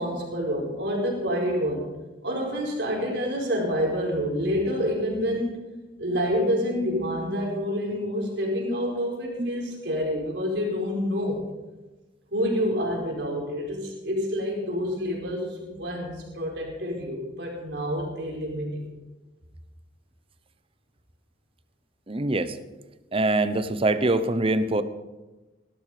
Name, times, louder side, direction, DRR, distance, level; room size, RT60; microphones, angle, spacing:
voice 1, 0.0-1.8 2.2-5.6 6.0-11.4 12.3-18.9, equal, 65° right, -2 dB, 4.8 m, -28 dB
voice 2, 22.1-22.6 23.1-24.8, right 2 dB, 30° right, 12 dB, 0.8 m, -24 dB
18.0 x 12.5 x 5.1 m, 1.1 s
head